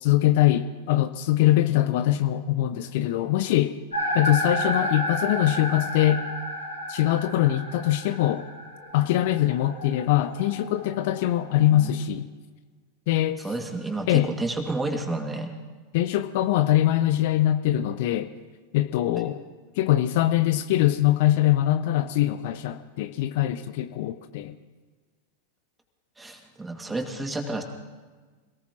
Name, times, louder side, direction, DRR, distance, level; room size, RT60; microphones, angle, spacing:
voice 1, 0.0-3.7 4.1-6.2 6.9-8.5 8.9-12.3 13.1-13.4 14.1-14.3 15.9-18.3 18.7-19.4 19.8-24.5, left 13 dB, 50° left, 11 dB, 0.7 m, -23 dB
sound 1, 3.9-11.9, equal, 80° left, 4.8 m, -32 dB
voice 2, 13.4-15.5 26.2-27.6, right 2 dB, 10° right, 4 dB, 2.2 m, -30 dB
27.0 x 18.0 x 3.0 m, 1.4 s
figure-of-eight pair, 90°, 0 cm